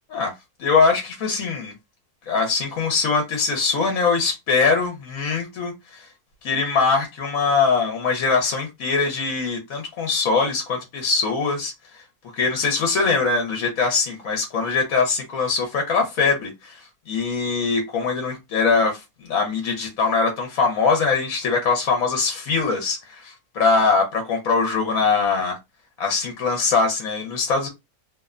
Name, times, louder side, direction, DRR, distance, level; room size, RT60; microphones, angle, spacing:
voice 1, 0.6-1.7 2.3-6.0 6.4-12.0 12.3-25.6 26.0-27.7, left 4 dB, 65° left, 1.0 m, -22 dB
2.9 x 2.1 x 2.4 m
omnidirectional pair, 1.6 m